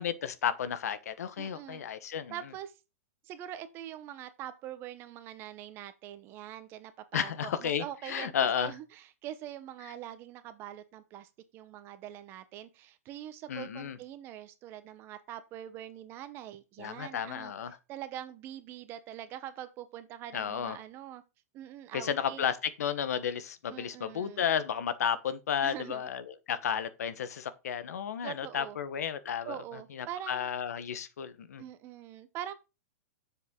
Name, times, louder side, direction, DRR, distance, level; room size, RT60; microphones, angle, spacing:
voice 1, 0.0-2.4 7.1-8.7 13.5-14.0 16.8-17.8 20.3-20.8 21.9-29.6 29.9-31.6, left 8 dB, 85° left, 1.1 m, -33 dB
voice 2, 1.4-1.8 2.3-2.7 3.2-17.5 17.9-21.2 21.5-22.5 23.7-24.4 25.6-26.1 28.2-28.8 29.4-30.5 31.6-32.5, right 11 dB, 30° right, 0.9 m, -43 dB
7.1 x 7.0 x 3.7 m
hypercardioid pair, 155°, 8 cm